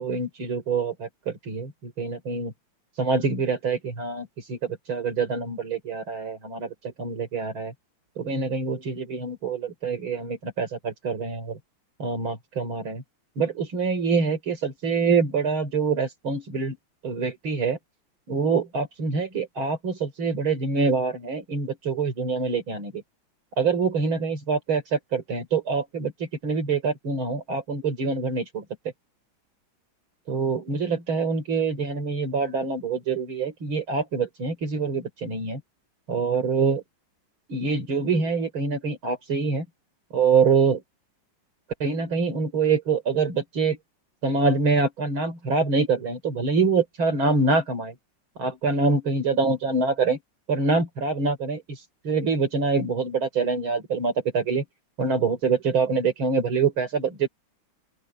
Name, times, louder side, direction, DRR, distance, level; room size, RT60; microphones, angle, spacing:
voice 1, 0.0-2.5 3.0-7.7 8.2-11.6 12.0-13.0 13.4-16.8 17.0-17.8 18.3-23.0 23.6-28.6 30.3-35.6 36.1-36.8 37.5-39.7 40.1-40.8 41.8-43.8 44.2-48.0 48.4-50.2 50.5-54.6 55.0-57.3, right 4 dB, 75° right, 4.8 m, -25 dB
open air
omnidirectional pair, 2.2 m